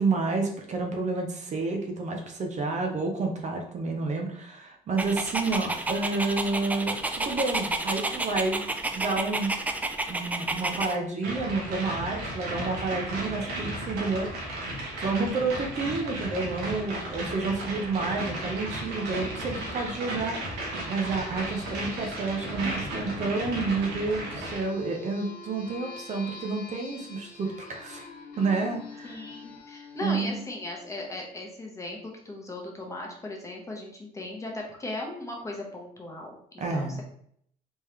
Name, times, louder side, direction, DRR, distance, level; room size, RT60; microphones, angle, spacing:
voice 1, 0.0-9.5 10.1-14.5 15.0-28.1 28.4-29.2 30.0-30.4 36.6-37.0, right 3 dB, 45° right, 2 dB, 0.8 m, -30 dB
Dog, 5.0-11.0, right 2 dB, 10° right, 0.3 m, -30 dB
sound 1, 11.2-24.6, right 1 dB, 90° right, 1.2 m, -34 dB
sound 2, 18.0-31.2, left 4 dB, 65° left, 1.4 m, -47 dB
voice 2, 29.0-37.0, left 2 dB, 20° left, 0 dB, 1.0 m, -37 dB
3.6 x 3.1 x 3.2 m, 0.66 s
cardioid pair, 110°, 17 cm